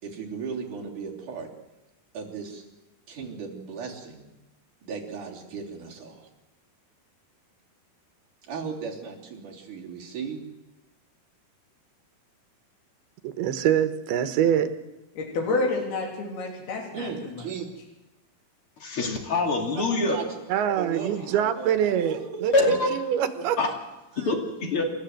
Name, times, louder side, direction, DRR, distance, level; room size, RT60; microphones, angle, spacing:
voice 1, 0.0-1.5 2.1-2.6 3.1-4.2 4.8-6.3 8.4-10.4 16.9-17.7 19.7-20.4 20.8-22.7 23.3-23.7 24.1-24.3, right 5 dB, 55° right, -3 dB, 4.7 m, -36 dB
voice 2, 13.2-14.7 20.5-22.5 22.9-23.6, right 10 dB, 90° right, 10 dB, 3.1 m, -24 dB
voice 3, 15.2-17.4, left 3 dB, 80° left, 0 dB, 5.3 m, -29 dB
voice 4, 18.8-20.2 22.5-22.9 23.6-23.7 24.2-24.8, left 3 dB, 40° left, 2 dB, 3.0 m, -24 dB
28.5 x 13.5 x 7.9 m, 1.0 s
omnidirectional pair, 4.4 m